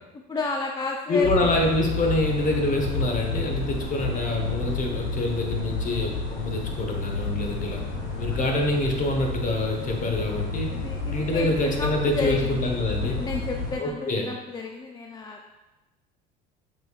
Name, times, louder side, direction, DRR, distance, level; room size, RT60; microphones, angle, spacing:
voice 1, 0.3-1.3 10.7-15.5, left 3 dB, 20° left, 1 dB, 0.3 m, -32 dB
voice 2, 1.1-7.8 8.2-10.7 11.0-13.2 13.8-14.3, left 2 dB, 40° left, 2 dB, 0.9 m, -26 dB
sound 1, 1.2-13.8, left 3 dB, 85° left, 1.4 m, -30 dB
5.9 x 3.1 x 2.4 m, 1.1 s
supercardioid pair, 90°, 21 cm